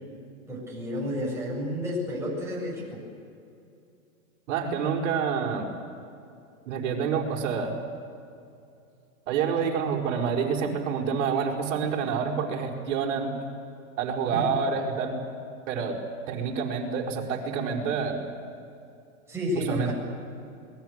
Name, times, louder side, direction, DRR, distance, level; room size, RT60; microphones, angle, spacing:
voice 1, 0.5-3.0 14.3-14.6 19.3-19.9, left 1 dB, 5° right, -4 dB, 7.7 m, -31 dB
voice 2, 4.5-5.7 6.7-7.7 9.3-13.3 14.0-15.2 15.7-16.0 16.3-18.2 19.5-19.9, right 6 dB, 60° right, 1 dB, 5.0 m, -28 dB
27.5 x 20.5 x 8.2 m, 2.5 s
hypercardioid pair, 140°, 42 cm